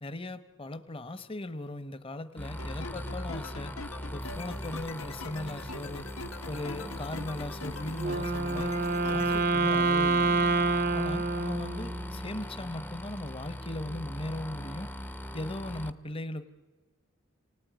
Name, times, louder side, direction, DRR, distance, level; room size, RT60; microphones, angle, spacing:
voice 1, 0.0-3.7 4.1-6.0 6.5-8.7 9.0-10.4 10.9-14.9 15.3-16.5, left 1 dB, 25° left, 12 dB, 1.0 m, -38 dB
sound 1, 2.4-15.9, left 1 dB, 10° left, 0.7 m, -40 dB
sound 2, 2.6-9.4, left 3 dB, 85° left, 1.6 m, -43 dB
Wind instrument woodwind instrument, 8.0-12.2, right 3 dB, 45° right, 0.7 m, -27 dB
30.0 x 18.5 x 9.4 m, 1.4 s
head